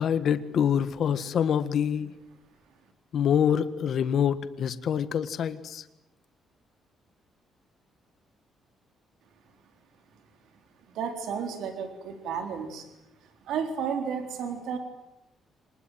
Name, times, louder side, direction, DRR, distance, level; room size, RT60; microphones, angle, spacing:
voice 1, 0.0-2.1 3.1-5.8, left 8 dB, 55° left, 12 dB, 1.7 m, -26 dB
voice 2, 10.9-12.9 13.2-14.8, right 6 dB, 85° right, 6 dB, 3.9 m, -32 dB
26.0 x 20.5 x 9.4 m, 0.90 s
cardioid pair, 135°, 0 cm